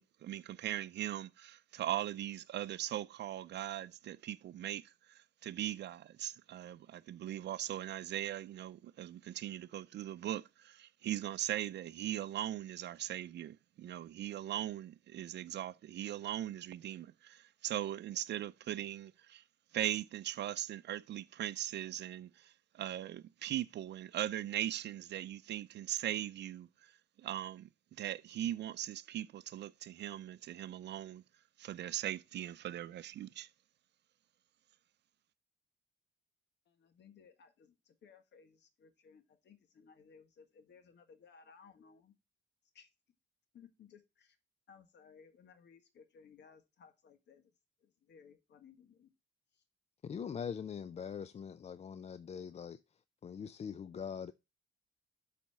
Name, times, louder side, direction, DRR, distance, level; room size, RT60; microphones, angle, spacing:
voice 1, 0.0-19.4 19.7-26.9 27.2-31.2 31.6-33.5, right 12 dB, 60° right, 0.4 m, -40 dB
voice 2, 36.7-42.1 42.7-42.9 43.5-44.4 44.7-47.5 47.8-49.1 49.5-49.6, left 6 dB, 60° left, 1.5 m, -61 dB
voice 3, 50.0-52.8 53.2-54.3, left 7 dB, 35° left, 0.4 m, -42 dB
7.5 x 4.2 x 5.5 m
cardioid pair, 90°, 20 cm